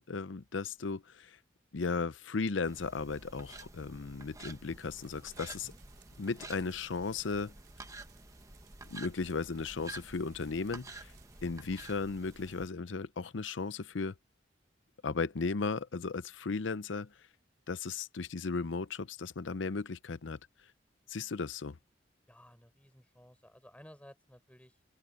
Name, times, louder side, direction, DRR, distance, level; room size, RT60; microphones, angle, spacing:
voice 1, 0.0-1.4 1.7-5.7 6.2-7.5 8.9-11.1 11.4-14.1 15.0-17.1 17.7-20.4 21.1-21.8, left 4 dB, 85° left, 0.7 m, -36 dB
sound 1, 2.7-12.7, right 2 dB, 20° right, 1.3 m, -50 dB
sound 2, 4.8-12.6, right 9 dB, 60° right, 4.8 m, -66 dB
voice 2, 22.3-24.8, equal, 5° left, 6.3 m, -56 dB
open air
head